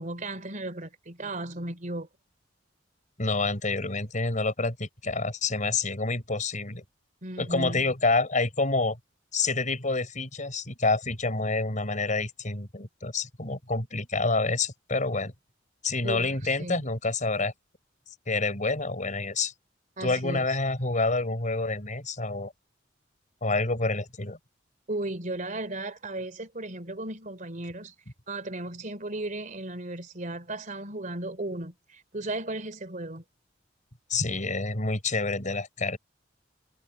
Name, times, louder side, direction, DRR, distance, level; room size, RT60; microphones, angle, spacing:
voice 1, 0.0-2.1 7.2-7.9 16.0-16.8 20.0-20.6 24.9-27.9 28.3-33.2, right 2 dB, 45° right, 3.2 m, -35 dB
voice 2, 3.2-6.8 7.4-9.0 9.3-15.3 15.8-17.5 18.3-19.5 20.0-22.5 23.4-24.4 34.1-36.0, left 3 dB, 45° left, 5.4 m, -28 dB
head